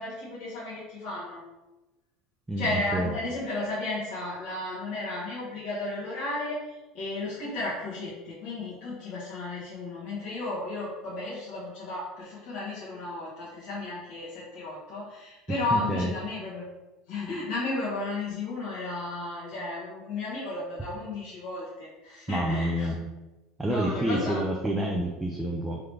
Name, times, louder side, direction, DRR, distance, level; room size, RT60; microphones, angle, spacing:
voice 1, 0.0-1.4 2.6-16.6 17.1-22.9 23.6-24.4, left 2 dB, 60° left, -9 dB, 1.4 m, -33 dB
voice 2, 2.5-3.1 15.5-16.1 22.3-23.0 23.6-25.8, right 1 dB, 10° right, -2 dB, 0.4 m, -28 dB
3.8 x 3.1 x 3.3 m, 1.1 s
supercardioid pair, 135°, 0 cm